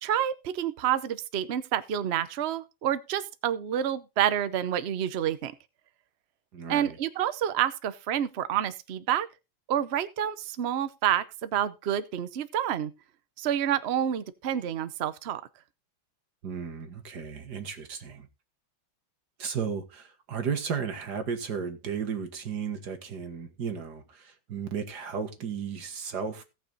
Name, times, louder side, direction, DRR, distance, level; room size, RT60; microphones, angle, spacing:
voice 1, 0.0-5.5 6.7-9.3 9.7-12.9 13.4-15.4, right 10 dB, 80° right, 0.5 m, -28 dB
voice 2, 6.5-7.0 16.4-18.3 19.4-26.4, right 6 dB, 55° right, 2.1 m, -34 dB
17.0 x 6.0 x 3.9 m
omnidirectional pair, 2.3 m